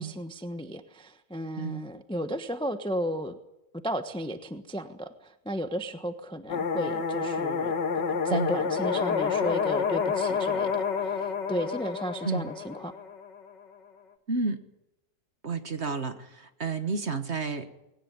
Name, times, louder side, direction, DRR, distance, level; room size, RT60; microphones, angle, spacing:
voice 1, 0.0-3.4 3.8-7.7 8.2-12.9, equal, 5° left, 9 dB, 0.8 m, -34 dB
sound 1, 6.5-13.5, left 5 dB, 75° left, 2.3 m, -29 dB
voice 2, 14.3-14.6 15.4-17.7, right 4 dB, 40° right, 9 dB, 1.6 m, -31 dB
20.0 x 18.0 x 9.5 m, 0.90 s
omnidirectional pair, 1.9 m